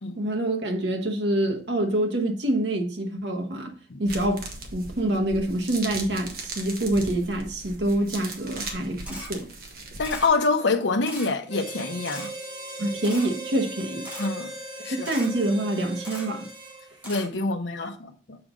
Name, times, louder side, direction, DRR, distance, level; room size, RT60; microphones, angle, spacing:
voice 1, 0.2-3.7 4.0-4.4 4.7-9.5 12.8-14.0 14.9-16.5, right 1 dB, 75° right, 1.1 m, -26 dB
sound 1, 4.1-10.3, right 2 dB, 55° right, 1.3 m, -38 dB
Camera, 9.0-9.3 10.0-10.3 11.0-11.3 12.0-12.3 13.0-13.3 14.0-14.3 15.0-15.3 16.0-16.3 17.0-17.3, equal, 10° right, 1.5 m, -38 dB
voice 2, 10.0-12.3 14.2-14.5 14.8-15.1 17.0-18.4, left 3 dB, 85° left, 0.8 m, -26 dB
Harmonica, 11.5-17.1, right 2 dB, 25° right, 1.5 m, -38 dB
6.9 x 3.8 x 4.9 m
head